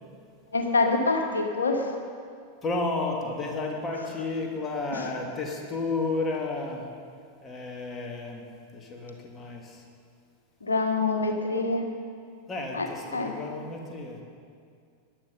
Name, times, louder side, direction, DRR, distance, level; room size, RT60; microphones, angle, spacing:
voice 1, 0.5-2.0 4.9-5.1 10.6-11.9 12.7-12.9 13.1-13.3, left 3 dB, 75° left, 4 dB, 1.7 m, -26 dB
voice 2, 2.6-6.9 7.4-8.5 8.7-9.8 12.5-14.2, left 3 dB, 20° left, 0 dB, 2.6 m, -32 dB
18.5 x 11.5 x 5.4 m, 2.2 s
figure-of-eight pair, 90°, 0 cm